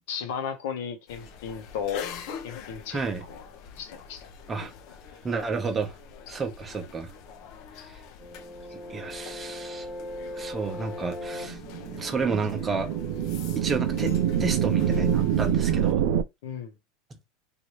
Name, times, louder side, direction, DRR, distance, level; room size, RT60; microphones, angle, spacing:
voice 1, 0.1-2.0 2.4-3.0 3.3-3.4 3.8-4.3 16.4-16.7, left 7 dB, 75° left, 1.0 m, -34 dB
sound 1, 1.1-15.9, left 7 dB, 55° left, 0.7 m, -44 dB
voice 2, 2.9-3.2 4.5-4.7 5.2-5.9 6.3-7.1 7.9-8.0 8.9-9.9 10.3-11.6 11.8-12.9 13.6-14.1 14.4-16.0, right 4 dB, 20° right, 0.8 m, -31 dB
sound 2, 8.2-15.2, left 2 dB, 30° left, 1.0 m, -40 dB
sound 3, 11.3-16.2, right 9 dB, 70° right, 0.3 m, -26 dB
3.1 x 2.6 x 3.0 m
supercardioid pair, 115°, 0 cm